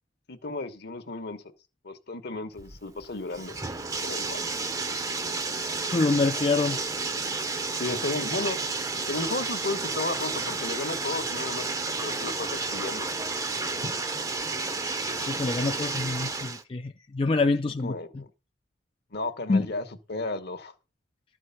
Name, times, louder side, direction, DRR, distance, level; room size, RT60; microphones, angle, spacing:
voice 1, 0.3-1.4 1.8-3.6 4.0-4.5 7.7-8.6 9.1-13.1 17.8-18.3 19.1-20.7, left 2 dB, 60° left, 1.2 m, -34 dB
Bathtub (filling or washing), 2.6-16.6, right 3 dB, 20° right, 0.7 m, -31 dB
voice 2, 5.9-6.8 13.8-13.9 15.1-18.2 19.5-19.7, left 3 dB, 30° left, 0.4 m, -26 dB
12.5 x 4.6 x 5.8 m
head